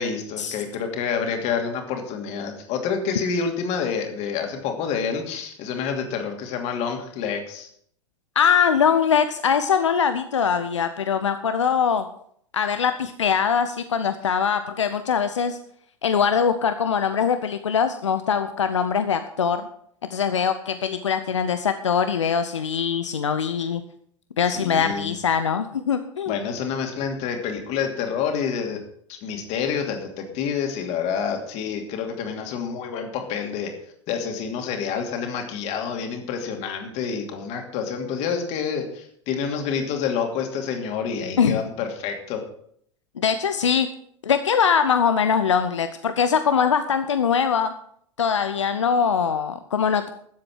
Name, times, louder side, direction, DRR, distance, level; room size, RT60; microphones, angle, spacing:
voice 1, 0.0-7.7 24.5-25.1 26.3-28.8 29.1-33.7 34.1-42.4, left 6 dB, 45° left, 4 dB, 2.7 m, -28 dB
voice 2, 8.4-12.1 12.5-15.6 16.0-19.7 20.1-23.8 24.4-26.4 41.4-41.6 43.2-43.9 44.2-47.7 48.2-50.1, left 7 dB, 75° left, 10 dB, 0.7 m, -22 dB
13.0 x 7.7 x 6.3 m, 0.65 s
figure-of-eight pair, 85°, 16 cm